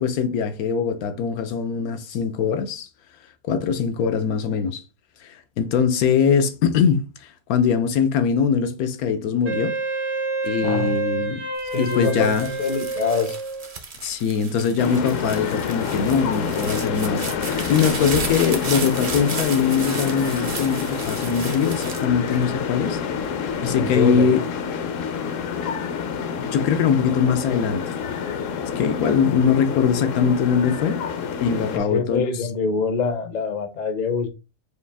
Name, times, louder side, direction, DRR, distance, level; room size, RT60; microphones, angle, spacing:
voice 1, 0.0-2.9 3.5-4.8 5.2-9.7 10.4-11.5 11.8-12.5 14.0-23.0 23.6-24.4 26.4-27.8 28.6-31.0 31.4-32.5, left 6 dB, 90° left, 1.1 m, -22 dB
Wind instrument woodwind instrument, 9.4-13.7, right 3 dB, 90° right, 1.6 m, -28 dB
voice 2, 10.6-11.1 11.7-13.4 23.8-24.5 31.7-34.3, left 5 dB, 45° left, 0.6 m, -25 dB
sound 1, 11.6-22.9 23.5-24.0, right 4 dB, 45° right, 0.5 m, -34 dB
sound 2, 14.8-31.8, left 6 dB, 70° left, 0.9 m, -28 dB
5.1 x 2.4 x 3.3 m
omnidirectional pair, 1.5 m